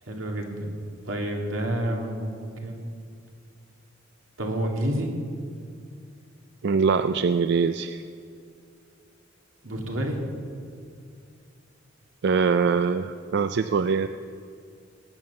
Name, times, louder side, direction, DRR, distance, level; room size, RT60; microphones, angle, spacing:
voice 1, 0.0-2.9 4.4-5.1 9.6-10.2, right 1 dB, 90° right, 1 dB, 2.5 m, -29 dB
voice 2, 6.6-8.0 12.2-14.1, right 5 dB, 60° right, 10 dB, 0.4 m, -23 dB
18.5 x 8.7 x 7.0 m, 2.3 s
head